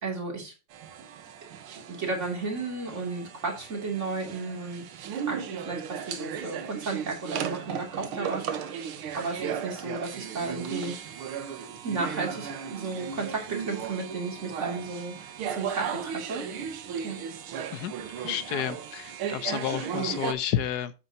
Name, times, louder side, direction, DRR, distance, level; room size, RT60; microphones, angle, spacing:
voice 1, 0.0-0.5 1.9-11.0 11.8-16.5 17.0-17.2, right 3 dB, 35° right, 3.1 m, -34 dB
sound 1, 0.7-20.3, right 8 dB, 80° right, 1.9 m, -36 dB
voice 2, 17.7-20.9, left 10 dB, 65° left, 1.1 m, -31 dB
9.1 x 8.2 x 2.8 m
omnidirectional pair, 2.3 m